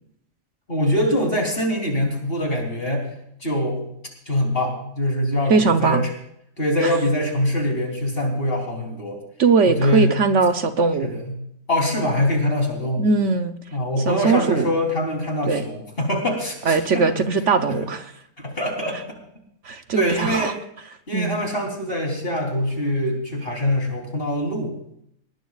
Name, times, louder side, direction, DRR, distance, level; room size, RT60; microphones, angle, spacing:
voice 1, 0.7-3.1 3.4-3.9 4.3-6.1 6.6-9.2 9.7-10.1 11.0-11.4 11.7-13.1 13.7-17.1 17.7-17.8 18.4-19.0 19.9-20.6 21.1-24.8, left 1 dB, 45° left, 1 dB, 3.7 m, -23 dB
voice 2, 5.5-6.0 6.8-6.9 9.4-11.1 13.0-13.5 14.1-14.7 15.5-15.6 16.7-18.1 19.6-20.5 21.1-21.4, right 4 dB, 65° right, 8 dB, 1.2 m, -20 dB
20.0 x 18.5 x 2.4 m, 0.74 s
omnidirectional pair, 1.4 m